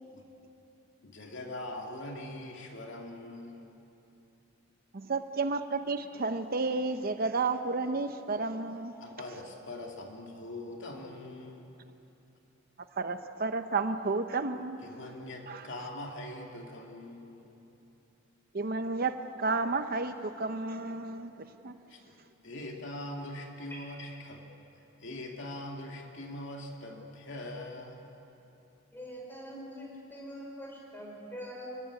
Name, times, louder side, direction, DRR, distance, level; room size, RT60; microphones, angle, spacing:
voice 1, 1.0-3.8 9.0-11.8 14.8-17.7 21.9-24.5 25.0-28.0, left 1 dB, 60° left, 1 dB, 2.5 m, -42 dB
voice 2, 4.9-8.9 13.0-14.8 15.5-15.7 18.5-21.8, right 3 dB, 45° right, 9 dB, 0.7 m, -32 dB
voice 3, 28.9-31.8, equal, 10° left, -3 dB, 5.9 m, -43 dB
27.5 x 15.5 x 9.7 m, 2.9 s
head